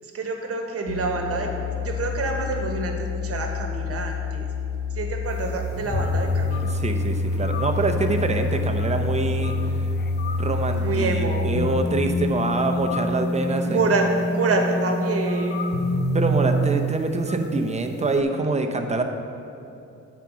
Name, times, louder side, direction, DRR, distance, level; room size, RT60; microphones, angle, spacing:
voice 1, 0.0-1.5 1.8-4.5 4.9-6.7 10.8-11.6 13.7-15.6, right 3 dB, 50° right, 3 dB, 1.2 m, -27 dB
sound 1, 0.9-16.7, left 2 dB, 80° left, 1.0 m, -26 dB
sound 2, 5.3-18.2, left 6 dB, 35° left, 0.6 m, -42 dB
voice 2, 6.7-9.6 10.4-13.8 16.1-19.0, right 2 dB, 20° right, 5 dB, 0.8 m, -25 dB
9.0 x 4.5 x 6.1 m, 2.8 s
cardioid pair, 90°, 30 cm